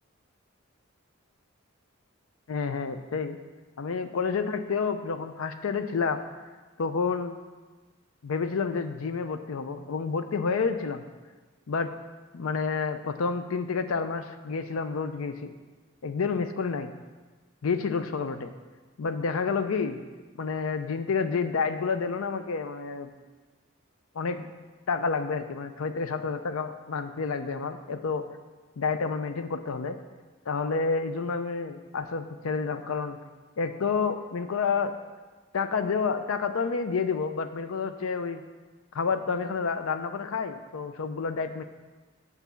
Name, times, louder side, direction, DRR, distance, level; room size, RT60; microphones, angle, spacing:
voice 1, 2.5-3.4 3.8-6.2 6.8-7.4 8.2-11.0 11.7-11.9 12.3-15.5 16.0-16.9 17.6-18.5 19.0-20.0 20.3-23.1 24.1-24.5 24.9-28.2 28.8-30.0 30.5-33.2 33.6-34.9 35.5-38.4 38.9-41.6, left 5 dB, 85° left, 9 dB, 0.5 m, -29 dB
8.3 x 4.1 x 6.9 m, 1.3 s
head